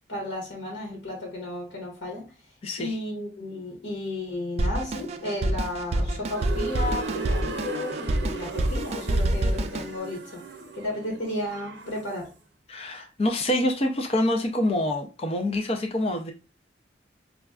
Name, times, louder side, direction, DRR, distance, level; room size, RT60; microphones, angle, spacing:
voice 1, 0.1-2.3 2.8-10.4 10.7-12.3, left 1 dB, 80° left, 1.3 m, -33 dB
voice 2, 2.6-2.9 12.7-16.3, left 1 dB, 35° left, 0.4 m, -26 dB
Drum kit, 4.6-9.9, right 1 dB, 35° right, 0.3 m, -27 dB
sound 1, 6.3-12.2, right 3 dB, 75° right, 0.6 m, -37 dB
5.0 x 2.2 x 2.3 m
head